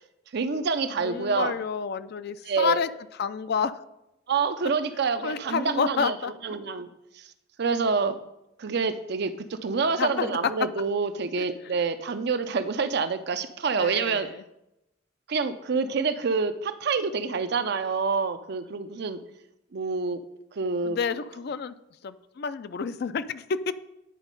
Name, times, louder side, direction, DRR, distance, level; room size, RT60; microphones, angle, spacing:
voice 1, 0.3-1.6 2.5-2.8 4.3-6.2 6.4-6.9 7.6-8.1 8.6-14.3 15.3-19.2 19.7-20.2 20.6-21.0, right 4 dB, 60° right, 10 dB, 0.5 m, -27 dB
voice 2, 1.0-2.9 3.2-3.8 5.2-6.3 10.0-10.4 11.4-11.5 11.7-11.8 13.7-14.4 20.8-21.7 22.0-23.7, left 6 dB, 55° left, 13 dB, 0.4 m, -29 dB
10.0 x 4.0 x 5.2 m, 0.88 s
head